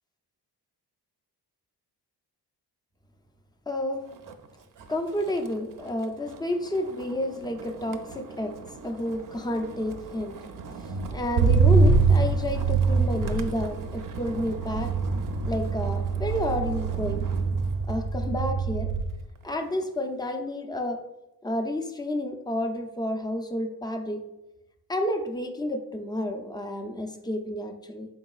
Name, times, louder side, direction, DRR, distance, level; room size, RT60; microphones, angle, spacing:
voice 1, 3.7-4.0 4.9-8.5 8.8-10.4 11.1-14.9 15.5-17.2 17.9-18.9 19.4-21.0 21.4-24.2 24.9-28.1, left 1 dB, 10° left, 4 dB, 0.4 m, -30 dB
Motor vehicle (road), 4.1-4.5 4.8-19.2 19.6-20.1, right 4 dB, 55° right, 0.5 m, -26 dB
3.8 x 3.8 x 2.3 m, 0.93 s
cardioid pair, 85°, 41 cm